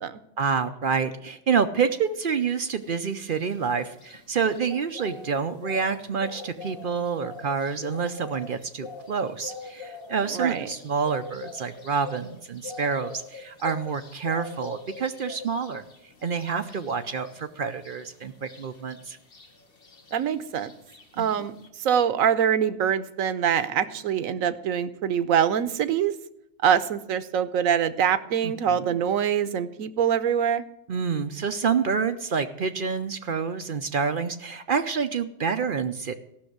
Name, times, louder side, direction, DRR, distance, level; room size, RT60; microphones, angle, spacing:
voice 1, 0.4-15.8 16.2-19.2 21.2-21.3 28.4-28.9 30.9-36.2, right 6 dB, 50° right, 9 dB, 0.7 m, -28 dB
sound 1, 2.8-21.7, left 4 dB, 45° left, 1.7 m, -43 dB
voice 2, 10.3-10.7 20.1-20.7 21.2-26.1 26.6-30.6, right 8 dB, 90° right, 14 dB, 1.1 m, -24 dB
14.5 x 6.2 x 7.9 m, 0.82 s
omnidirectional pair, 1.4 m